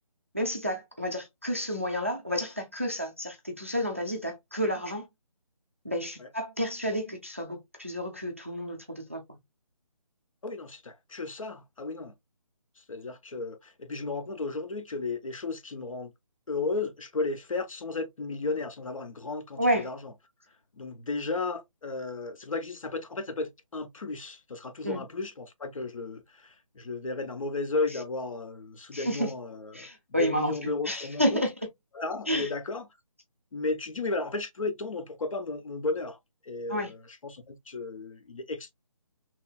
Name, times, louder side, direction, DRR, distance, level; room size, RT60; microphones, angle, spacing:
voice 1, 0.3-5.1 5.8-9.4 19.6-19.9 24.8-25.0 28.9-29.3 29.7-31.5 32.3-32.5 36.7-36.9, equal, 25° right, 0.4 m, -30 dB
voice 2, 10.4-12.1 12.9-16.1 16.5-20.1 20.8-29.9 30.2-31.4 31.9-32.9 33.5-36.2 36.4-38.7, left 3 dB, 65° left, 0.7 m, -34 dB
3.0 x 2.4 x 2.2 m
hypercardioid pair, 175°, 19 cm